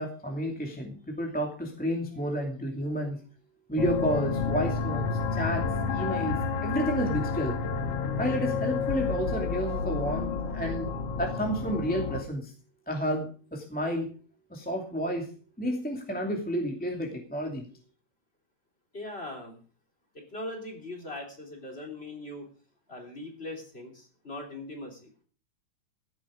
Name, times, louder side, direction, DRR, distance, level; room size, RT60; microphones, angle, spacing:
voice 1, 0.0-3.2 3.7-5.1 5.3-6.3 6.6-7.5 8.2-10.9 11.2-12.5 12.9-14.1 14.5-15.3 15.6-17.7, equal, 5° left, 1 dB, 2.0 m, -31 dB
sound 1, 3.8-12.2, left 5 dB, 60° left, 2.0 m, -30 dB
voice 2, 18.9-19.6 20.1-22.5 22.9-25.1, left 1 dB, 20° left, 2 dB, 3.3 m, -40 dB
15.5 x 10.5 x 5.1 m, 0.40 s
omnidirectional pair, 3.7 m